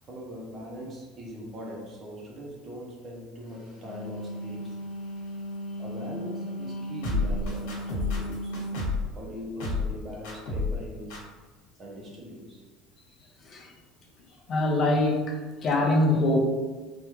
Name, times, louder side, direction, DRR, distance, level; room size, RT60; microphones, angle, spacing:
voice 1, 0.0-4.8 5.8-8.6 9.1-11.3 11.8-12.6, equal, 25° right, -3 dB, 0.5 m, -41 dB
Wind instrument woodwind instrument, 3.6-8.9, equal, 45° left, 1.0 m, -36 dB
sound 1, 7.0-9.1 9.6-10.0 10.2-10.8 11.1-11.2, left 3 dB, 80° left, 1.2 m, -29 dB
voice 2, 13.4-13.7 14.5-16.4, left 2 dB, 30° left, 0 dB, 0.5 m, -24 dB
3.4 x 2.2 x 3.0 m, 1.3 s
cardioid pair, 165°, 0 cm